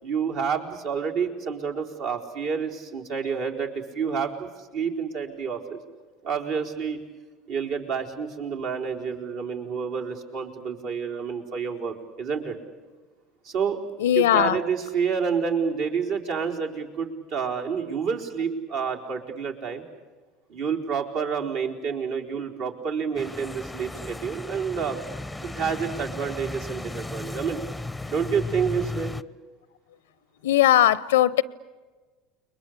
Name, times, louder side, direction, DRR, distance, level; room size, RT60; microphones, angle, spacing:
voice 1, 0.0-5.8 6.2-7.0 7.5-12.6 13.4-13.8 14.1-19.8 20.5-25.0 25.4-27.6 28.1-29.1, right 6 dB, 65° right, 0 dB, 4.1 m, -29 dB
voice 2, 14.0-14.6 30.4-31.4, left 12 dB, 80° left, 21 dB, 0.8 m, -19 dB
sound 1, 23.2-29.2, left 2 dB, 5° left, 0.8 m, -35 dB
30.0 x 22.5 x 8.4 m, 1.3 s
hypercardioid pair, 75°, 0 cm